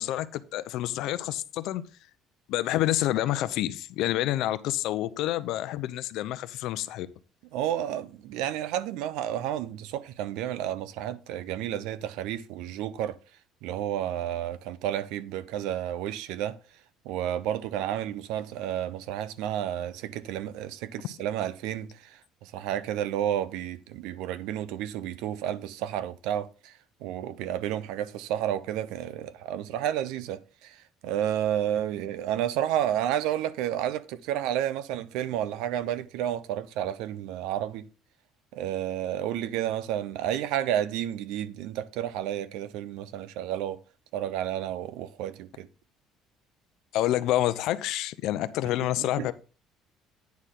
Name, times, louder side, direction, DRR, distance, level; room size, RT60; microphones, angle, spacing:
voice 1, 0.0-1.8 2.5-7.1 46.9-49.3, left 14 dB, 60° left, 0.6 m, -28 dB
voice 2, 7.5-13.2 13.6-16.6 17.0-26.7 27.0-37.9 38.5-43.8 44.1-45.7 49.0-49.3, right 11 dB, 85° right, 0.7 m, -31 dB
9.5 x 6.5 x 3.8 m
cardioid pair, 170°, 0 cm